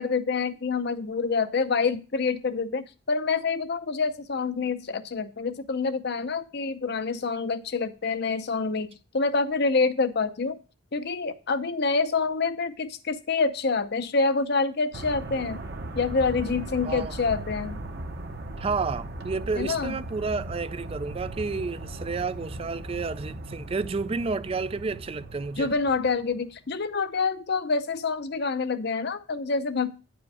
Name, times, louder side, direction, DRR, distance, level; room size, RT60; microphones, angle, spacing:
voice 1, 0.0-8.9 9.1-10.6 10.9-15.6 15.9-17.8 19.6-20.0 25.6-30.0, left 4 dB, 50° left, 0.6 m, -27 dB
sound 1, 14.9-26.6, right 1 dB, 50° right, 0.9 m, -38 dB
voice 2, 18.6-25.7, right 4 dB, 25° right, 0.3 m, -31 dB
9.5 x 5.0 x 4.8 m
head